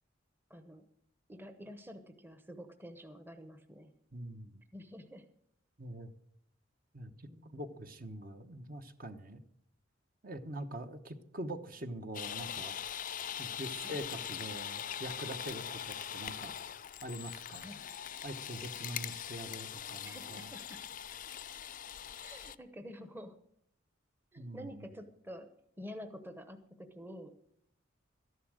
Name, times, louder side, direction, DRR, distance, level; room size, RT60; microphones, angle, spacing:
voice 1, 0.5-0.9 1.3-3.9 4.7-5.3 7.3-7.6 13.8-14.0 17.6-17.8 20.0-20.8 22.2-23.4 24.3-25.5 25.8-27.3, equal, 10° right, 8 dB, 0.9 m, -48 dB
voice 2, 4.1-4.6 5.8-6.1 6.9-9.4 10.2-12.8 13.4-16.6 17.0-17.7 18.2-20.5 24.4-24.9, right 1 dB, 45° right, 7 dB, 1.2 m, -44 dB
sound 1, 12.1-22.6, left 9 dB, 45° left, 0.5 m, -42 dB
13.5 x 11.0 x 6.4 m, 0.71 s
head